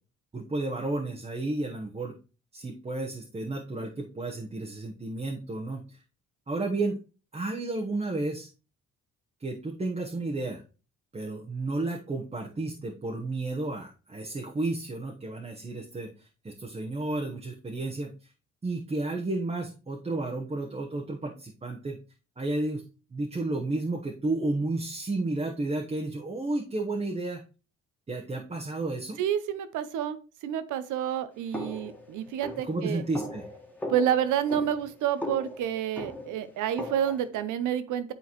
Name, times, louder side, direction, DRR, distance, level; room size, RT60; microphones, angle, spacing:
voice 1, 0.3-2.1 2.5-6.0 6.5-7.0 7.3-8.5 9.4-10.6 11.1-18.3 18.6-22.0 22.4-22.8 23.1-27.4 28.1-29.2 32.7-33.5, right 2 dB, 20° right, 1 dB, 0.9 m, -32 dB
voice 2, 29.2-33.0 33.9-38.1, right 10 dB, 85° right, 13 dB, 0.7 m, -29 dB
sound 1, 31.5-37.3, left 1 dB, 5° left, 1.5 m, -39 dB
9.7 x 3.9 x 3.0 m, 0.34 s
cardioid pair, 90°, 30 cm